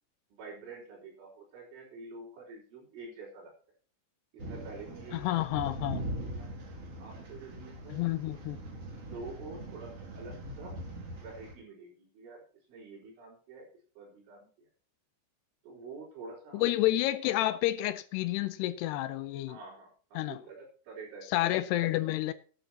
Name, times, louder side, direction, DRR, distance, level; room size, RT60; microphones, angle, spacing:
voice 1, 0.3-3.5 4.3-5.4 6.0-6.5 7.0-8.0 9.0-10.7 11.2-12.4 12.7-13.7 14.0-14.5 15.6-16.6 19.5-21.2 21.5-21.6, right 3 dB, 90° right, 6.7 m, -47 dB
sound 1, 4.4-11.5, right 1 dB, 40° right, 2.9 m, -41 dB
voice 2, 5.1-6.0 7.9-8.6 16.5-19.6 20.2-20.4 21.3-22.3, left 15 dB, 80° left, 2.4 m, -30 dB
16.0 x 11.5 x 2.9 m
omnidirectional pair, 5.3 m